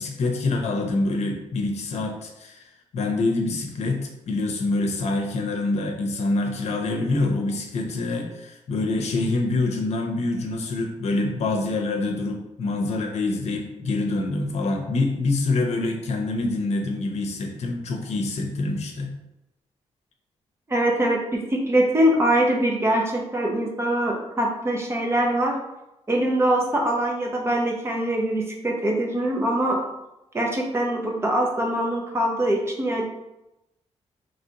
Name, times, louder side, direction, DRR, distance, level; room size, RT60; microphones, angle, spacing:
voice 1, 0.0-2.6 2.9-19.1, left 2 dB, 70° left, 2 dB, 0.7 m, -26 dB
voice 2, 20.7-25.5 26.1-29.8 30.3-33.0, right 1 dB, 20° right, 0 dB, 0.7 m, -23 dB
3.9 x 3.2 x 2.8 m, 0.91 s
wide cardioid pair, 125°, 12 cm